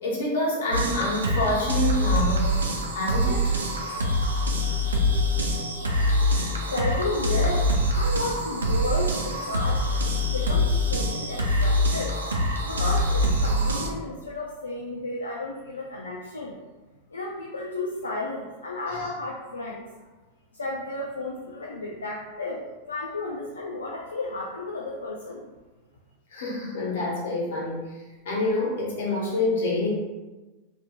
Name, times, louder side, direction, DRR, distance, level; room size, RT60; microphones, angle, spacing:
voice 1, 0.0-2.6 2.9-3.5 5.8-6.3 18.9-19.0 26.3-27.8 28.2-29.9, left 1 dB, 70° left, -4 dB, 1.0 m, -27 dB
sound 1, 0.7-13.9, equal, 85° right, 0.4 m, -24 dB
voice 2, 6.7-12.2 12.6-16.6 17.1-19.9 20.5-25.5, left 2 dB, 90° left, -2 dB, 0.3 m, -33 dB
2.8 x 2.6 x 2.2 m, 1.2 s
hypercardioid pair, 95°, 0 cm